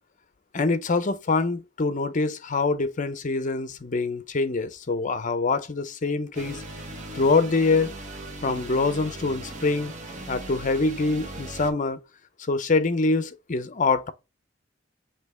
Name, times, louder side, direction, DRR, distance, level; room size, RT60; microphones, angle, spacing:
voice 1, 0.5-6.6 7.1-7.9 8.4-9.9 10.3-12.0 12.5-14.1, left 3 dB, 45° left, 0.6 m, -25 dB
sound 1, 6.3-11.7, right 2 dB, 40° right, 1.0 m, -39 dB
5.9 x 2.8 x 3.2 m
head